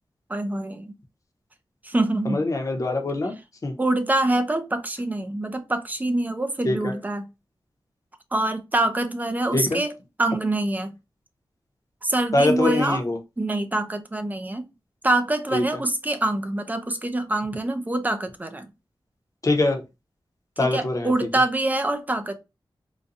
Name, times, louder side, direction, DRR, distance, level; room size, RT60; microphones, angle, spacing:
voice 1, 0.3-0.9 1.8-2.4 3.8-7.2 8.3-9.9 10.2-10.9 12.0-13.0 13.4-14.7 15.0-18.7 20.6-22.4, right 2 dB, 20° right, 0.5 m, -25 dB
voice 2, 2.3-3.3 3.6-3.8 6.6-6.9 9.5-9.8 12.3-13.2 15.5-15.8 19.4-19.8 20.6-21.1, left 2 dB, 40° left, 0.8 m, -23 dB
4.0 x 2.2 x 2.5 m
wide cardioid pair, 115°, 9 cm